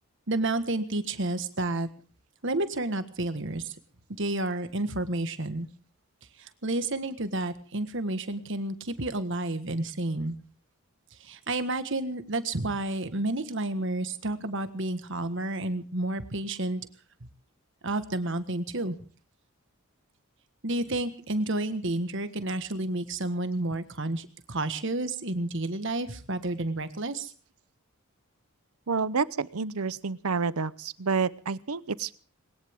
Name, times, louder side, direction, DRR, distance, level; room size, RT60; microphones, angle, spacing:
voice 1, 0.3-1.9 2.4-3.7 4.2-5.7 6.4-10.3 11.2-16.8 17.8-19.0 20.6-27.3, right 2 dB, 60° right, 10 dB, 1.6 m, -30 dB
voice 2, 28.9-32.2, right 5 dB, 90° right, 18 dB, 0.8 m, -29 dB
21.0 x 19.0 x 3.7 m, 0.40 s
head